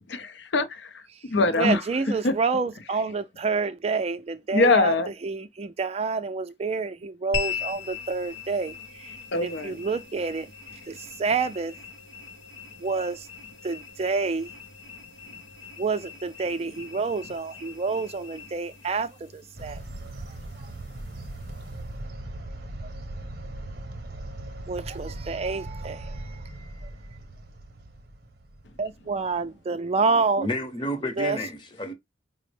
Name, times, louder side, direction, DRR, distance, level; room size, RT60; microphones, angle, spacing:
voice 1, 0.1-1.8 2.2-2.3 4.5-5.1 9.3-9.8, left 3 dB, 65° left, 0.6 m, -23 dB
voice 2, 1.1-4.9 5.2-10.5 10.9-11.8 12.8-13.3 13.6-14.5 15.8-19.8 20.3-20.7 22.8-22.9 24.7-26.9 28.8-30.5 31.0-31.4, right 4 dB, 35° right, 0.4 m, -28 dB
sound 1, 7.3-21.9, left 6 dB, 85° left, 0.9 m, -40 dB
sound 2, 19.5-29.4, right 1 dB, 55° right, 0.7 m, -39 dB
voice 3, 30.4-31.9, equal, 25° left, 0.8 m, -30 dB
4.9 x 2.0 x 3.2 m
head